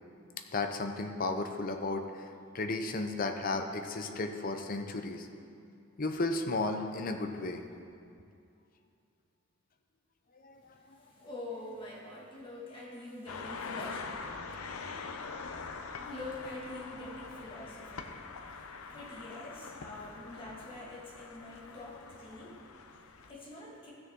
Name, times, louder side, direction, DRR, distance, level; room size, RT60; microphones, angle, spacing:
voice 1, 0.5-2.3 2.5-5.3 6.0-7.6 10.4-10.6, left 2 dB, 40° left, 5 dB, 0.6 m, -34 dB
voice 2, 10.6-14.0 16.0-23.9, left 2 dB, 25° left, -5 dB, 1.9 m, -45 dB
sound 1, 13.3-23.3, left 4 dB, 85° left, 0.7 m, -44 dB
15.5 x 6.5 x 3.7 m, 2.5 s
head